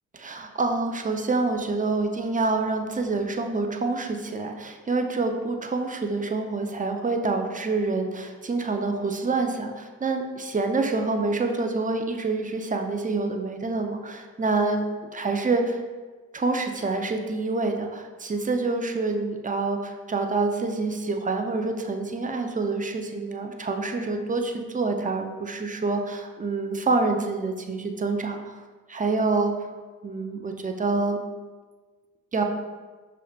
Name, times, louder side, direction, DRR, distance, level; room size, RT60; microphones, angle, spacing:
voice 1, 0.1-14.8 15.1-15.8 16.3-28.5 28.9-29.7 30.0-31.2 32.3-32.4, right 3 dB, 20° right, 4 dB, 0.5 m, -27 dB
6.3 x 2.6 x 2.8 m, 1.4 s
hypercardioid pair, 45°, 43 cm